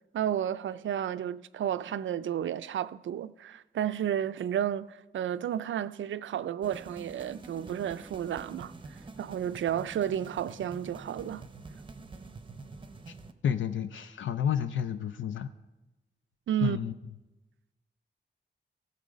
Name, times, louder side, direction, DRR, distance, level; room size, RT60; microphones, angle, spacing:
voice 1, 0.1-11.4 16.5-16.8, right 10 dB, 85° right, 0.4 m, -32 dB
sound 1, 6.6-13.3, right 3 dB, 25° right, 0.6 m, -47 dB
voice 2, 13.4-15.5 16.6-16.9, left 8 dB, 80° left, 0.5 m, -30 dB
17.0 x 6.8 x 5.1 m
wide cardioid pair, 165°, 19 cm